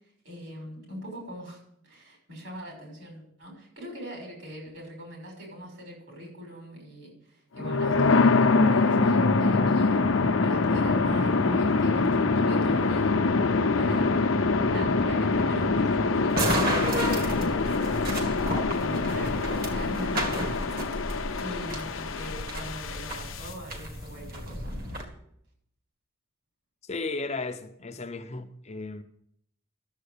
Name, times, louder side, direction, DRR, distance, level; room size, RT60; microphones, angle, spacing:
voice 1, 0.2-13.3 13.7-14.3 14.7-16.7 17.4-18.0 18.8-20.9 21.3-24.8, equal, 60° right, 6.1 m, -41 dB
sound 1, 7.6-23.5, left 3 dB, 70° left, 0.7 m, -24 dB
sound 2, 16.3-25.0, right 1 dB, 45° right, 1.9 m, -33 dB
voice 2, 26.8-29.0, left 3 dB, 30° left, 0.6 m, -35 dB
13.0 x 7.4 x 6.7 m
head